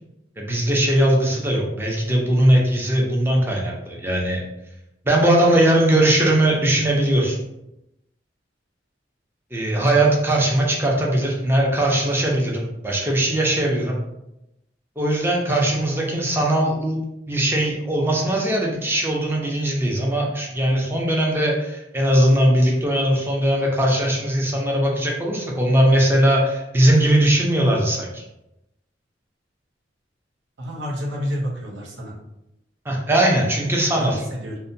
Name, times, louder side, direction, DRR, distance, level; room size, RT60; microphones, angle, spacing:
voice 1, 0.4-4.4 5.1-7.4 9.5-14.0 15.0-17.0 17.3-28.2 32.9-34.2, right 1 dB, 15° right, -2 dB, 0.5 m, -20 dB
voice 2, 30.6-32.2 33.9-34.6, equal, 90° right, -2 dB, 0.6 m, -29 dB
2.7 x 2.1 x 2.6 m, 0.87 s
head